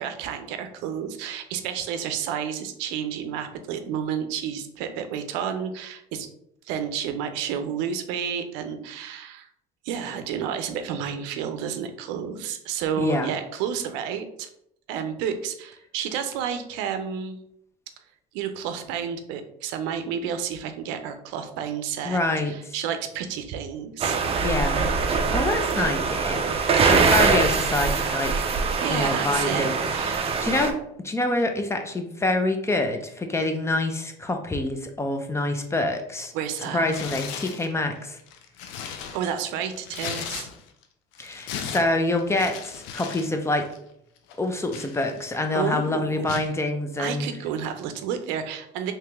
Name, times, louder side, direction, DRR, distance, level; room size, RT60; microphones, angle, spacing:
voice 1, 0.0-6.3 6.6-9.5 9.8-14.5 14.9-17.4 18.3-22.2 22.5-24.2 26.6-26.7 28.8-30.2 36.3-36.9 39.1-40.5 45.5-46.4 47.0-48.9, right 8 dB, 75° right, 8 dB, 0.5 m, -31 dB
voice 2, 13.0-13.3 22.0-22.7 24.4-24.8 25.3-28.4 28.9-29.8 30.0-30.8 31.0-36.3 36.7-38.2 41.2-43.6 44.4-47.3, left 2 dB, 15° left, 6 dB, 0.5 m, -26 dB
sound 1, 24.0-30.7, right 5 dB, 30° right, 0.5 m, -23 dB
Tearing, 36.9-37.7 38.2-40.8 41.1-43.3 43.5-43.8 44.3-45.5 46.3-46.5, left 7 dB, 75° left, 0.5 m, -37 dB
3.0 x 2.9 x 3.4 m, 0.74 s
supercardioid pair, 100°, 19 cm